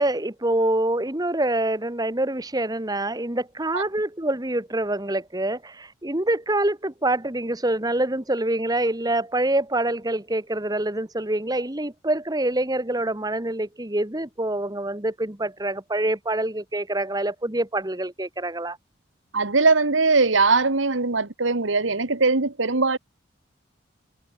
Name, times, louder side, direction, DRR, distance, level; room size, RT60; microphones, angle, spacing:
voice 1, 0.0-18.8, right 1 dB, 20° right, 1.5 m, -26 dB
voice 2, 19.3-23.0, right 3 dB, 80° right, 1.7 m, -20 dB
head